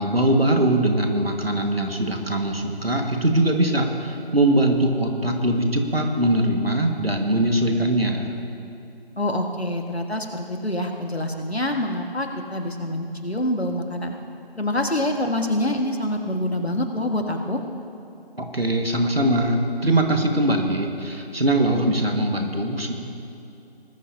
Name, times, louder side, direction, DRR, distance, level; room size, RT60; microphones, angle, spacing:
voice 1, 0.0-8.3 18.4-22.9, right 1 dB, 70° right, 3 dB, 1.8 m, -21 dB
voice 2, 9.2-14.2 14.6-17.6, left 1 dB, 85° left, 3 dB, 1.8 m, -26 dB
20.0 x 13.0 x 2.8 m, 2.7 s
figure-of-eight pair, 175°, 31 cm